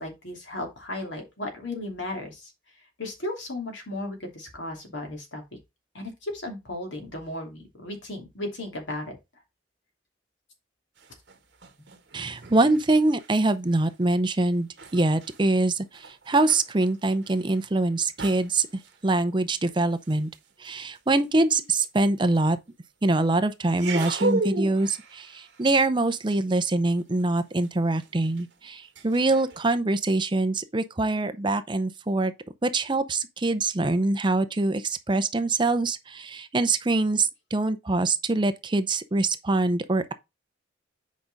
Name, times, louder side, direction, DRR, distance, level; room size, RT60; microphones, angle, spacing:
voice 1, 0.0-2.5 3.0-5.4 5.9-9.2, left 1 dB, 75° left, 2.9 m, -35 dB
sound 1, 11.0-13.4 13.7-13.9 14.3-21.5 22.2-22.4 23.7-29.7, right 2 dB, 60° right, 1.5 m, -36 dB
voice 2, 12.1-18.7 19.0-20.3 20.6-22.6 23.0-32.3 32.6-40.1, right 2 dB, 25° right, 0.6 m, -24 dB
8.4 x 5.1 x 4.0 m
head